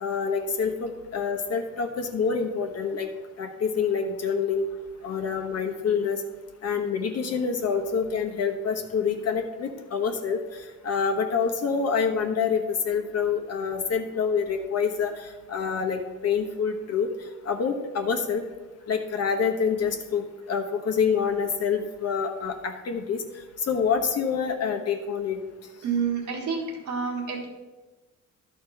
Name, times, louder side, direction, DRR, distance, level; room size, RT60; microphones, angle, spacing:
voice 1, 0.0-3.1 3.4-4.7 5.0-6.2 6.6-17.1 17.4-18.4 18.9-23.2 23.6-25.4, left 6 dB, 55° left, 4 dB, 1.2 m, -27 dB
voice 2, 25.8-27.5, right 6 dB, 75° right, -1 dB, 2.1 m, -28 dB
11.5 x 4.3 x 5.8 m, 1.2 s
cardioid pair, 90°, 30 cm